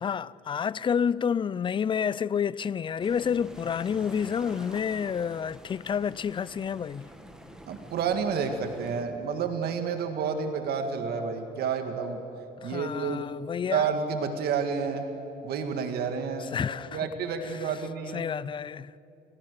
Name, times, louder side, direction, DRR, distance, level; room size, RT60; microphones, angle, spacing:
voice 1, 0.0-7.1 12.6-13.9 16.4-17.1 17.4-17.7 18.1-18.9, left 7 dB, 30° left, 0.4 m, -29 dB
sound 1, 3.0-9.0, equal, 5° right, 2.0 m, -47 dB
voice 2, 7.7-12.2 12.6-13.2 13.7-15.1 15.4-16.6 16.9-18.3, right 6 dB, 70° right, 2.0 m, -30 dB
29.5 x 17.5 x 6.8 m
cardioid pair, 110°, 17 cm